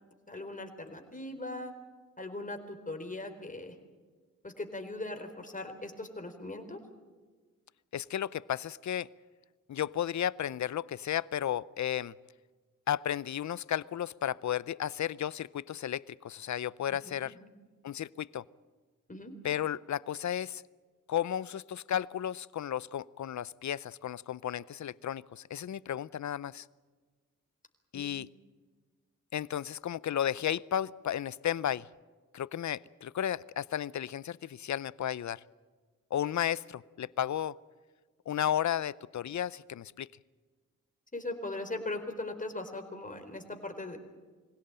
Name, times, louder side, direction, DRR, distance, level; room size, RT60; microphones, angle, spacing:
voice 1, 0.3-1.7 2.2-3.7 4.4-6.8 17.1-17.5 19.1-19.3 27.9-28.1 41.1-44.0, left 2 dB, 25° left, 5 dB, 3.9 m, -39 dB
voice 2, 7.9-9.1 9.7-12.1 12.9-17.4 17.8-18.4 19.4-20.6 21.1-26.7 27.9-28.3 29.3-31.9 32.3-35.4 36.1-37.5 38.3-40.1, left 10 dB, 65° left, 21 dB, 0.6 m, -33 dB
24.5 x 17.0 x 8.9 m, 1.4 s
cardioid pair, 70°, 31 cm